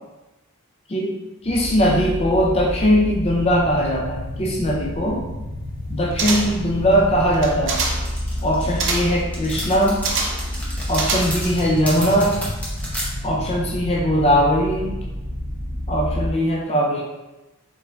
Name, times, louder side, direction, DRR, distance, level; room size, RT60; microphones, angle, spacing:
sound 1, 1.4-16.3, left 1 dB, 65° left, 1.1 m, -30 dB
voice 1, 1.4-5.2 5.9-7.8 8.4-10.1 10.9-12.4 13.2-15.1 15.9-17.0, equal, 30° left, -2 dB, 0.4 m, -20 dB
sound 2, 6.2-6.7 7.3-8.1 8.8-9.2 10.0-10.5 10.9-11.6 11.9-12.0, right 4 dB, 55° right, 0.6 m, -25 dB
sound 3, 8.0-13.1, equal, 5° left, 1.0 m, -32 dB
4.0 x 3.8 x 2.3 m, 1.0 s
head